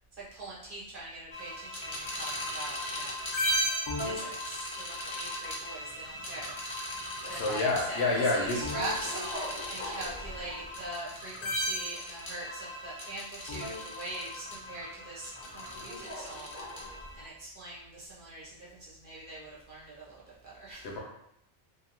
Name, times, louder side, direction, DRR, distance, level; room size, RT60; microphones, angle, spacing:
voice 1, 0.2-3.2 4.0-20.9, right 1 dB, 50° right, -7 dB, 0.8 m, -42 dB
sound 1, 1.3-17.2, equal, 45° left, 0.3 m, -36 dB
voice 2, 7.3-8.6 20.8-21.0, left 2 dB, 65° left, -2 dB, 0.8 m, -28 dB
2.6 x 2.2 x 2.8 m, 0.77 s
omnidirectional pair, 1.3 m